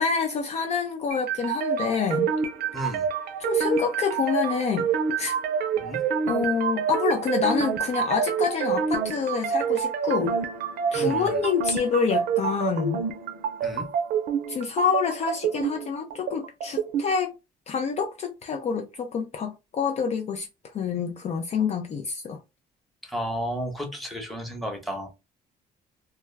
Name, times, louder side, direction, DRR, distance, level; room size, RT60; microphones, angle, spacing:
voice 1, 0.0-2.3 2.8-2.9 3.4-4.9 5.2-5.4 6.3-10.4 10.9-13.1 14.5-17.3 17.7-20.5 20.7-22.4, left 6 dB, 40° left, 0.4 m, -27 dB
sound 1, 1.1-17.1, right 7 dB, 65° right, 0.5 m, -27 dB
voice 2, 2.7-3.1 5.8-6.0 10.9-11.4 13.6-13.9 23.1-25.1, equal, ahead, 0.9 m, -32 dB
2.2 x 2.1 x 3.2 m
cardioid pair, 110°, 17 cm